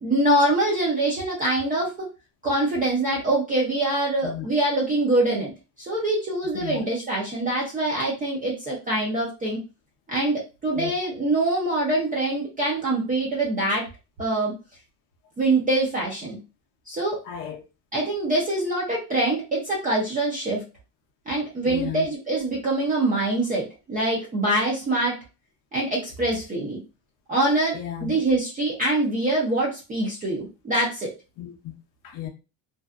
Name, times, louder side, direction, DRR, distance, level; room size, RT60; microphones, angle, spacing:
voice 1, 0.0-2.1 2.4-5.5 5.8-9.6 10.1-13.8 14.2-14.5 15.4-16.4 16.9-17.2 17.9-20.6 21.3-25.2 25.7-26.8 27.3-31.1, right 2 dB, 20° right, 0.3 m, -24 dB
voice 2, 17.2-17.6 21.6-22.1 27.7-28.1 31.4-31.7 32.0-32.3, left 10 dB, 45° left, 0.5 m, -34 dB
2.6 x 2.1 x 2.3 m
cardioid pair, 170°, 46 cm